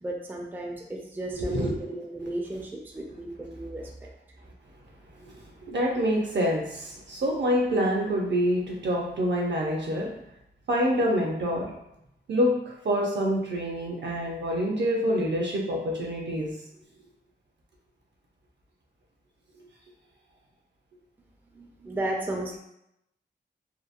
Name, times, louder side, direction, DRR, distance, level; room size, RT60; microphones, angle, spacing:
voice 1, 0.0-4.1 21.5-22.6, right 1 dB, 10° right, 0 dB, 0.4 m, -34 dB
voice 2, 1.3-2.3 5.2-10.1 10.7-11.7 12.3-12.5 12.8-16.5, equal, 70° right, -1 dB, 0.6 m, -26 dB
2.8 x 2.0 x 2.5 m, 0.81 s
wide cardioid pair, 90°, 19 cm